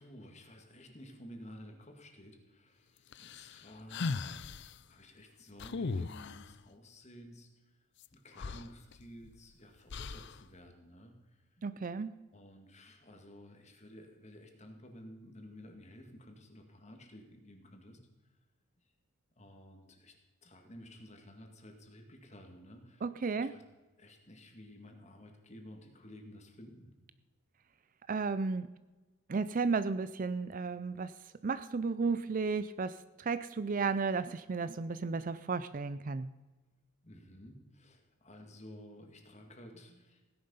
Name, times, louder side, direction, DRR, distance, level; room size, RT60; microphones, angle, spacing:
voice 1, 0.0-7.5 8.1-11.1 12.3-18.0 19.4-20.1 20.4-23.0 23.4-23.6 24.0-26.9 37.0-40.3, equal, 30° left, 4 dB, 2.1 m, -53 dB
sound 1, 3.1-4.7 5.6-6.5 8.0-8.1 8.4-9.4 9.9-10.4, left 4 dB, 55° left, 0.5 m, -38 dB
voice 2, 11.6-12.1 23.0-23.5 28.1-28.7 29.3-31.1 31.4-36.3, right 4 dB, 40° right, 14 dB, 0.4 m, -33 dB
16.5 x 10.5 x 5.6 m, 1.2 s
head